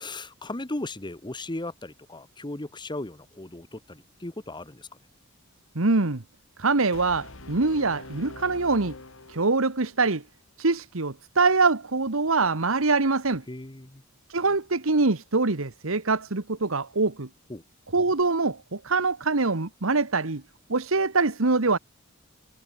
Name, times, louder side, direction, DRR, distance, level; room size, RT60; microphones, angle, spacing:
voice 1, 0.0-4.9 13.5-14.0 17.5-17.6, left 2 dB, 20° left, 1.3 m, -36 dB
voice 2, 5.7-6.2 6.6-9.0 9.3-10.2 10.6-13.4 14.3-17.3 17.9-20.4 20.7-21.8, right 3 dB, 70° right, 1.4 m, -24 dB
Brass instrument, 6.9-10.0, left 2 dB, 70° left, 2.7 m, -44 dB
head